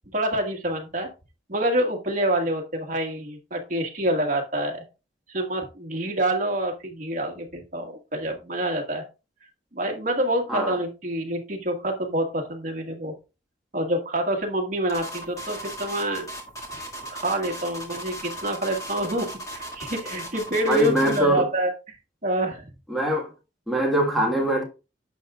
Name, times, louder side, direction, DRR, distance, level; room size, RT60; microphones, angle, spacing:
voice 1, 0.1-1.1 1.5-4.8 5.3-9.0 9.7-13.1 13.7-16.3 17.1-21.7 22.2-22.6, right 1 dB, 45° right, 1.6 m, -27 dB
sound 1, 14.9-21.3, right 1 dB, 20° left, 2.0 m, -37 dB
voice 2, 20.7-21.4 22.9-23.3 23.7-24.6, right 1 dB, ahead, 1.6 m, -22 dB
11.0 x 7.6 x 2.4 m
head